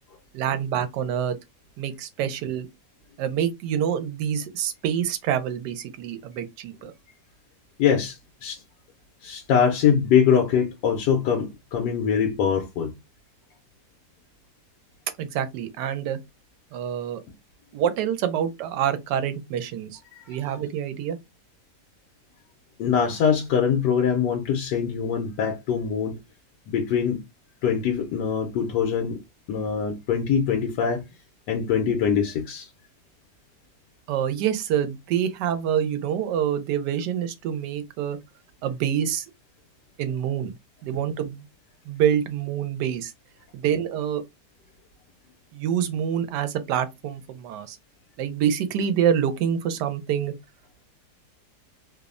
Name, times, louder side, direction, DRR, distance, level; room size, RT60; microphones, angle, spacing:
voice 1, 0.3-1.4 1.8-2.7 3.2-6.9 15.2-16.2 16.7-17.2 17.7-20.0 20.3-21.2 34.1-38.2 38.6-39.3 40.0-40.5 40.8-41.5 41.9-43.1 43.5-44.2 45.5-47.8 48.2-50.3, right 9 dB, 90° right, 1.2 m, -26 dB
voice 2, 7.8-8.6 9.2-12.9 20.1-20.4 22.8-26.2 26.7-27.2 27.6-29.2 29.5-31.0 31.5-32.7, left 7 dB, 90° left, 1.2 m, -23 dB
3.1 x 2.0 x 2.4 m
omnidirectional pair, 1.8 m